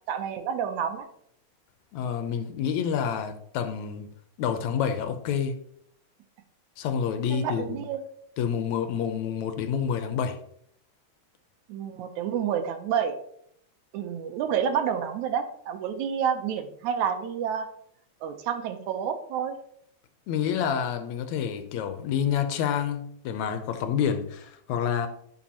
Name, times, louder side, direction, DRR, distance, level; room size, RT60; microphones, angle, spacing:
voice 1, 0.1-1.1 7.3-8.0 11.7-13.2 13.9-17.7 18.2-19.5, right 8 dB, 90° right, 2.2 m, -29 dB
voice 2, 1.9-5.6 6.8-7.8 8.4-10.4 20.3-25.1, left 8 dB, 80° left, 2.0 m, -28 dB
11.5 x 5.3 x 2.9 m
omnidirectional pair, 3.3 m